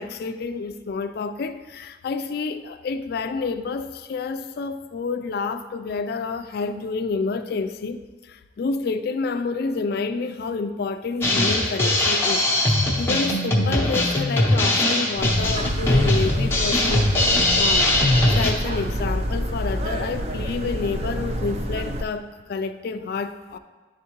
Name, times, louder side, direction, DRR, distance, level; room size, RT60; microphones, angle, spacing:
voice 1, 0.0-17.1 17.6-17.9 18.3-23.6, left 4 dB, 50° left, 9 dB, 0.3 m, -29 dB
Drum kit, 11.2-18.5, left 1 dB, 15° left, 0.7 m, -21 dB
sound 1, 15.2-22.0, equal, 35° right, 0.4 m, -27 dB
10.5 x 3.5 x 2.9 m, 1.3 s
head